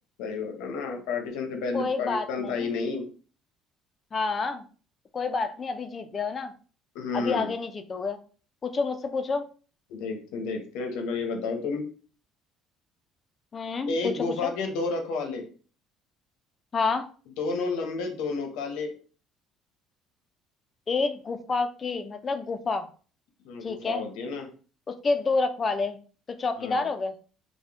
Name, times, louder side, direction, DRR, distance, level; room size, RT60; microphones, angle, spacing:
voice 1, 0.2-3.1 6.9-7.5 9.9-11.8 13.9-15.4 17.4-18.9 23.4-24.5 26.6-26.9, left 4 dB, 85° left, 4 dB, 0.7 m, -31 dB
voice 2, 1.7-2.7 4.1-4.6 5.1-6.5 7.1-8.2 8.6-9.4 13.5-14.5 16.7-17.1 20.9-22.9 23.6-24.0 24.9-26.0 26.4-27.1, left 4 dB, 25° left, 9 dB, 0.3 m, -28 dB
3.5 x 2.1 x 3.4 m, 0.39 s
cardioid pair, 175°, 0 cm